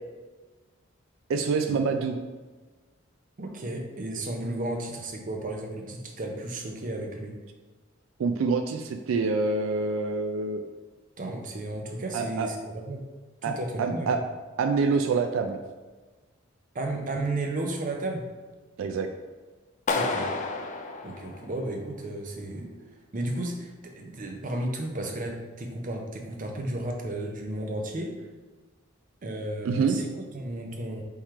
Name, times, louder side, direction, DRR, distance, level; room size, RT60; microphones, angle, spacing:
voice 1, 1.3-2.2 8.2-10.6 12.1-12.5 13.4-14.2 14.6-15.6 18.8-19.1 29.6-30.0, right 4 dB, 85° right, 6 dB, 0.3 m, -26 dB
voice 2, 3.4-7.3 11.2-13.0 13.4-14.2 16.7-18.3 19.9-20.3 21.0-22.7 23.1-28.1 29.2-30.1 30.3-31.0, right 1 dB, 40° right, 2 dB, 0.6 m, -33 dB
Clapping, 19.9-21.9, left 3 dB, 40° left, 0.4 m, -30 dB
3.7 x 3.1 x 4.3 m, 1.3 s
head